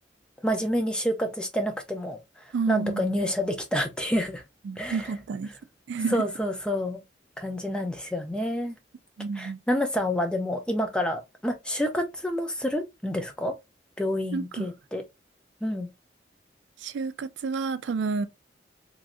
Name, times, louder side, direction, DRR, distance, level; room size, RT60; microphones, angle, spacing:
voice 1, 0.4-2.2 2.7-4.4 4.8-5.1 6.1-7.0 7.4-8.7 9.3-13.5 14.0-15.0 15.6-15.9, equal, 5° left, 0.5 m, -28 dB
voice 2, 2.5-3.1 4.6-5.5 5.9-6.3 9.2-9.6 14.3-14.7 16.8-18.3, right 4 dB, 75° right, 0.3 m, -30 dB
3.1 x 2.6 x 2.5 m
head